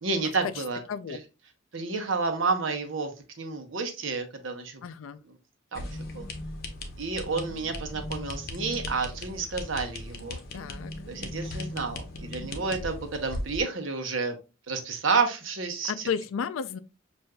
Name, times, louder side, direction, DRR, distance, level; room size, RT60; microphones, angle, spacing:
voice 1, 0.0-0.8 1.1-1.2 1.7-3.1 3.4-4.8 5.2-5.4 5.7-6.3 7.0-10.4 11.1-14.4 14.7-16.1, right 4 dB, 70° right, 0.8 m, -30 dB
voice 2, 4.8-5.2 10.5-10.9 15.9-16.8, left 7 dB, 80° left, 0.4 m, -32 dB
sound 1, 5.7-13.6, left 1 dB, 50° left, 0.7 m, -38 dB
6.2 x 2.5 x 2.2 m
head